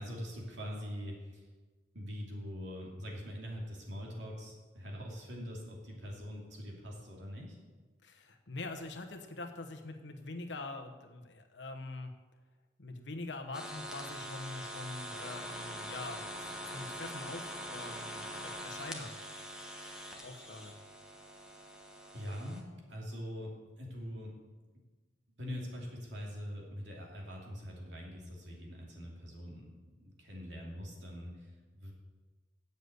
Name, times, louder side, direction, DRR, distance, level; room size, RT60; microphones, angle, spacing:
voice 1, 0.0-1.4 1.9-7.6 22.1-24.3 25.4-31.9, equal, 70° right, -2 dB, 2.8 m, -43 dB
voice 2, 8.0-12.1 12.8-19.1 20.2-20.8, left 2 dB, 70° left, 5 dB, 1.1 m, -44 dB
sound 1, 13.5-22.6, equal, 5° right, 1.2 m, -44 dB
8.1 x 7.4 x 8.1 m, 1.3 s
head